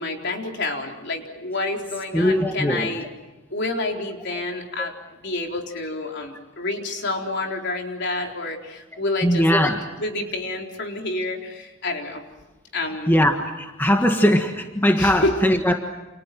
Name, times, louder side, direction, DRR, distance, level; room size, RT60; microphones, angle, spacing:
voice 1, 0.0-3.1 3.5-4.9 5.2-12.2 12.7-13.1 15.0-15.3, left 2 dB, 55° left, 2 dB, 4.1 m, -28 dB
voice 2, 2.1-2.9 9.2-9.8 13.1-15.7, equal, 10° left, 3 dB, 1.6 m, -20 dB
29.5 x 29.0 x 6.0 m, 1.1 s
head